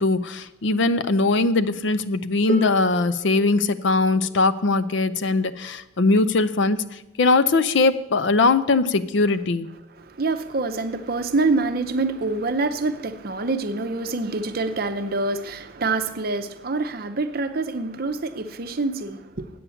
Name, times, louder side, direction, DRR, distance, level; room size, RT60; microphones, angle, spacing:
voice 1, 0.0-9.7, left 3 dB, 65° left, 0.5 m, -21 dB
Harp, 2.5-8.3 9.3-9.4, right 3 dB, 50° left, 1.8 m, -38 dB
voice 2, 10.0-19.5, right 3 dB, 50° right, 0.6 m, -26 dB
8.5 x 8.5 x 7.0 m
head